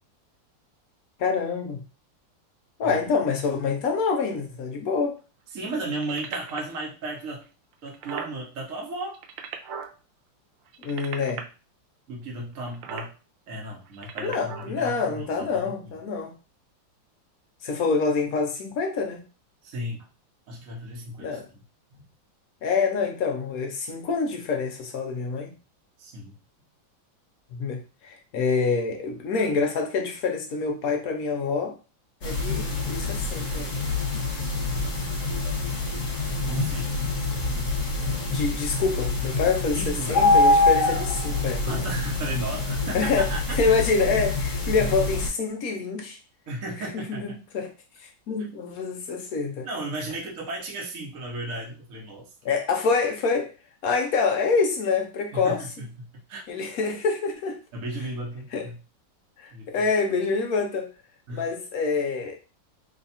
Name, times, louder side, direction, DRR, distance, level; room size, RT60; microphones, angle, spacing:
voice 1, 1.2-1.8 2.8-5.2 10.8-11.4 14.2-16.4 17.6-19.2 21.2-21.5 22.6-25.5 27.5-31.8 32.2-33.8 38.2-41.8 42.9-46.2 46.8-47.3 47.5-47.7 48.0-49.7 52.4-53.5 53.8-55.6 56.5-57.6 58.5-58.6 59.4-60.9 61.3-62.4, left 4 dB, 65° left, 0.9 m, -26 dB
voice 2, 5.5-7.4 7.8-9.2 12.1-13.1 13.5-15.7 19.6-20.1 20.5-21.6 21.9-22.0 26.0-26.3 36.5-36.9 39.7-40.3 41.6-43.8 44.7-44.8 46.5-47.4 49.6-52.3 55.3-55.9 56.3-56.4 57.7-58.8 59.5-59.7 61.3-61.4, right 1 dB, 55° right, 1.1 m, -35 dB
sound 1, 5.9-6.7 7.4-7.5 7.7-8.3 9.0-9.9 10.7-11.4 12.7-13.1 13.9-14.7 15.5-15.6, right 7 dB, 80° right, 1.3 m, -37 dB
sound 2, 32.2-45.3, left 2 dB, 45° left, 1.2 m, -25 dB
3.3 x 2.3 x 4.1 m
omnidirectional pair, 2.1 m